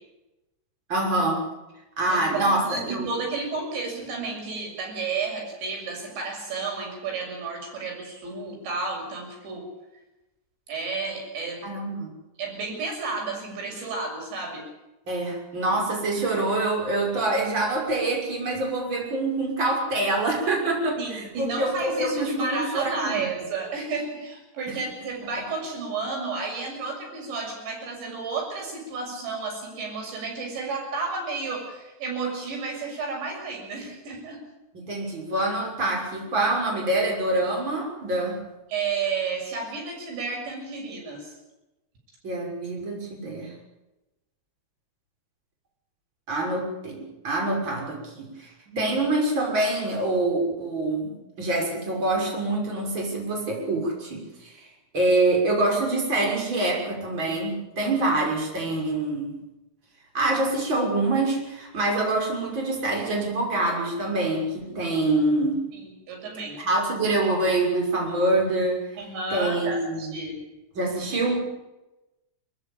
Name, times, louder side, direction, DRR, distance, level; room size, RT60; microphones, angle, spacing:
voice 1, 0.9-1.4 2.0-3.1 11.6-12.1 15.1-23.3 24.7-24.8 34.7-38.4 42.2-43.5 46.3-48.5 48.8-54.5 54.9-59.3 60.1-65.5 66.6-68.8 69.3-70.1 70.7-71.4, right 2 dB, 25° right, 0 dB, 6.7 m, -25 dB
voice 2, 2.1-9.6 10.7-11.7 12.4-14.6 21.0-34.4 38.7-41.3 48.7-49.0 65.7-66.6 69.0-70.3, right 4 dB, 90° right, 0 dB, 9.1 m, -32 dB
28.5 x 14.5 x 8.8 m, 0.98 s
omnidirectional pair, 5.0 m